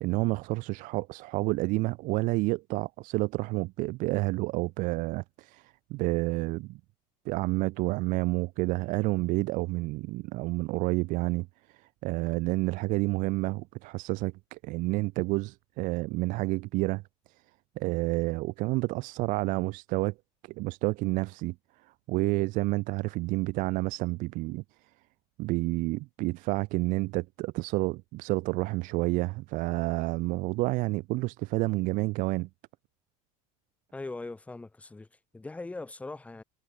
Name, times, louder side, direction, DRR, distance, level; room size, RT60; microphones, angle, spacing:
voice 1, 0.0-6.8 7.3-17.0 17.8-20.1 20.4-21.5 21.8-24.6 25.4-32.5, right 22 dB, 50° right, 0.5 m, -29 dB
voice 2, 33.9-36.4, left 2 dB, 10° left, 1.0 m, -40 dB
cardioid pair, 140°, 17 cm